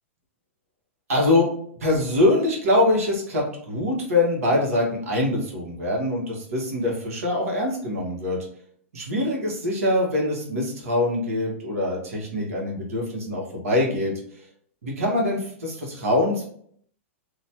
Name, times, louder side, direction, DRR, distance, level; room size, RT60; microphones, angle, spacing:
voice 1, 1.1-1.5 1.8-8.4 8.9-14.5 14.8-16.4, left 1 dB, 85° right, -1 dB, 1.2 m, -24 dB
3.0 x 2.3 x 2.8 m, 0.62 s
hypercardioid pair, 135°, 8 cm